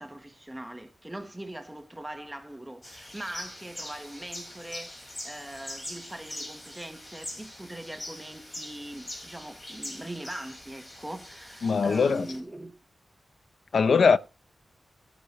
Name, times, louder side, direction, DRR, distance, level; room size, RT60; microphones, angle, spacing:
voice 1, 0.0-12.7, right 1 dB, 10° right, 1.1 m, -41 dB
sound 1, 2.8-12.4, left 1 dB, 20° left, 4.7 m, -43 dB
voice 2, 11.6-12.3 13.7-14.2, left 5 dB, 70° left, 0.6 m, -21 dB
18.0 x 10.0 x 3.0 m
wide cardioid pair, 175°, 0 cm